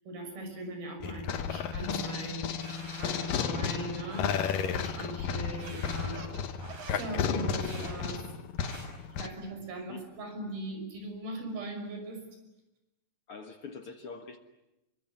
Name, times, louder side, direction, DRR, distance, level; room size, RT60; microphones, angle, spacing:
voice 1, 0.1-2.4 2.9-4.3 4.6-6.2 6.9-8.3 9.2-12.2, right 2 dB, 90° right, 5 dB, 7.7 m, -39 dB
sound 1, 1.0-9.3, left 7 dB, 75° left, 2.8 m, -33 dB
sound 2, 2.6-3.7 4.1-5.1 5.6-6.3 6.6-7.1 7.6-8.0 8.6-8.9, right 2 dB, 55° right, 6.8 m, -47 dB
Laughter, 5.5-7.2 7.5-8.2 8.6-10.3, right 7 dB, 70° right, 3.9 m, -49 dB
voice 2, 13.3-14.4, left 4 dB, 50° left, 6 dB, 1.9 m, -44 dB
27.0 x 23.0 x 9.5 m, 0.94 s
omnidirectional pair, 4.1 m